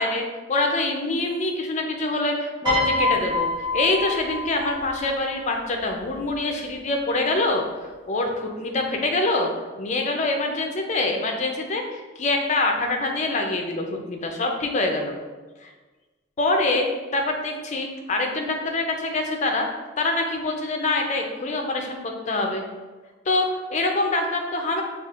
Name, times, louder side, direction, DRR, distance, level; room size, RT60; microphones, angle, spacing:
voice 1, 0.0-7.6 8.1-9.5 9.8-15.2 15.6-15.7 16.4-16.9 17.1-19.7 20.0-22.6 23.3-24.8, left 2 dB, 35° left, 2 dB, 0.4 m, -25 dB
Piano, 2.7-5.0 6.1-6.3, left 2 dB, 20° right, 0.9 m, -26 dB
5.8 x 2.4 x 2.4 m, 1.3 s
head